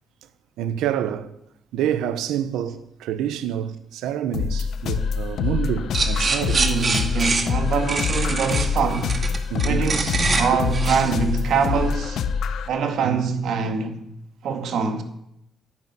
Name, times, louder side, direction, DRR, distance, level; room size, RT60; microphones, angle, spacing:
voice 1, 0.6-1.3 1.7-6.6 9.5-9.9 13.0-13.2, right 10 dB, 90° right, 1.1 m, -27 dB
sound 1, 4.3-12.7, left 6 dB, 70° left, 1.1 m, -25 dB
sound 2, 5.9-12.1, right 4 dB, 40° right, 2.1 m, -25 dB
voice 2, 6.5-9.2 9.6-12.2 12.7-14.0 14.4-15.0, right 5 dB, 75° right, 2.1 m, -24 dB
11.5 x 10.0 x 9.6 m
cardioid pair, 90°, 0 cm